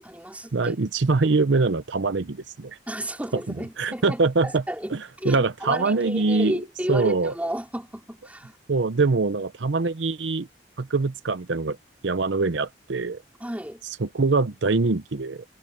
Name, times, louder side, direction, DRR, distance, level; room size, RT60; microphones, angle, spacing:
voice 1, 0.0-0.7 2.9-8.6 13.4-13.8, equal, 10° right, 4.7 m, -33 dB
voice 2, 0.5-2.8 3.3-4.6 4.9-6.6 6.9-7.3 8.7-10.5 10.8-11.8 12.0-13.2 14.0-15.4, right 3 dB, 75° right, 0.7 m, -23 dB
head